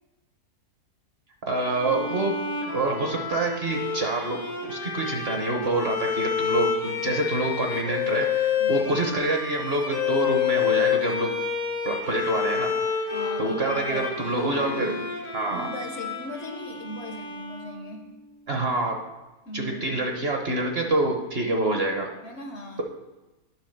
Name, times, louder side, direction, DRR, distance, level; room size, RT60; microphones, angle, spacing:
voice 1, 1.4-2.3 2.7-11.3 11.8-13.0 13.4-14.9 15.3-15.7 18.5-19.0 19.5-22.1, right 2 dB, 45° right, 2 dB, 1.1 m, -26 dB
Bowed string instrument, 1.6-18.1, left 7 dB, 90° left, 2.0 m, -29 dB
voice 2, 8.6-9.1 13.1-15.0 15.5-18.1 19.5-20.0 22.2-22.8, left 1 dB, 55° left, 4 dB, 0.9 m, -38 dB
10.0 x 3.7 x 6.5 m, 1.1 s
omnidirectional pair, 1.7 m